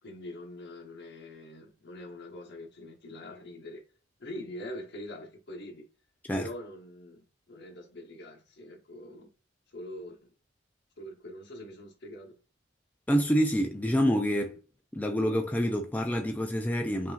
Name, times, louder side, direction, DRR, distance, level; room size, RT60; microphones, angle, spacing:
voice 1, 0.0-3.8 4.2-5.9 6.3-9.3 9.7-10.3 11.0-12.4, left 1 dB, 65° left, 1.0 m, -44 dB
voice 2, 13.1-14.6 14.9-17.1, equal, 10° left, 0.3 m, -27 dB
5.5 x 2.7 x 2.4 m
head